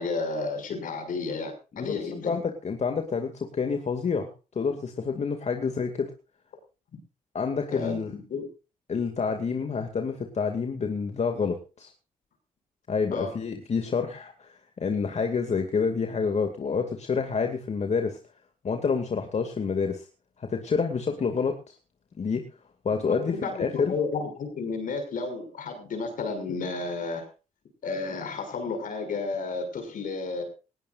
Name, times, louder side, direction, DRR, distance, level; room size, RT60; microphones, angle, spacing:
voice 1, 0.0-2.4 7.7-8.5 13.1-13.4 23.1-27.3 27.8-30.4, left 4 dB, 70° left, 6 dB, 6.3 m, -32 dB
voice 2, 1.7-4.3 4.6-6.1 7.3-8.1 8.9-11.9 12.9-18.2 18.6-20.1 20.4-21.8 22.2-22.5 22.8-23.9, left 5 dB, 50° left, 5 dB, 2.4 m, -28 dB
19.5 x 16.5 x 2.6 m, 0.33 s
supercardioid pair, 60°, 14 cm